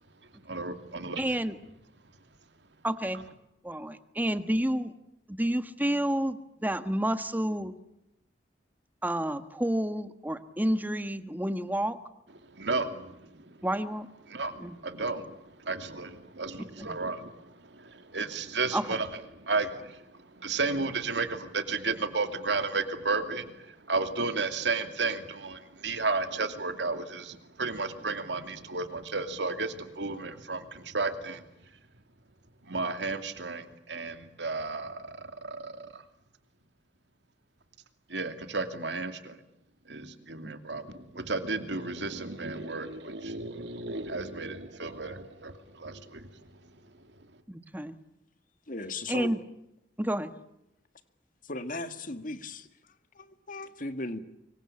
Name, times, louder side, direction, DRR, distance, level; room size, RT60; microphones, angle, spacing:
voice 1, 0.4-1.2 12.5-13.6 14.3-31.4 32.6-36.0 38.1-39.4 39.9-46.3, right 3 dB, 80° right, 2.7 m, -33 dB
voice 2, 1.2-1.6 2.8-3.2 3.6-4.9 5.3-7.7 9.0-12.0 13.6-14.1 14.6-14.7 16.8-17.0 18.7-19.0 47.5-48.0 49.1-49.4 50.0-50.3, right 1 dB, 10° right, 1.5 m, -30 dB
voice 3, 48.7-49.4 51.4-52.7 53.1-54.2, left 2 dB, 50° left, 2.1 m, -37 dB
25.5 x 24.0 x 8.8 m
head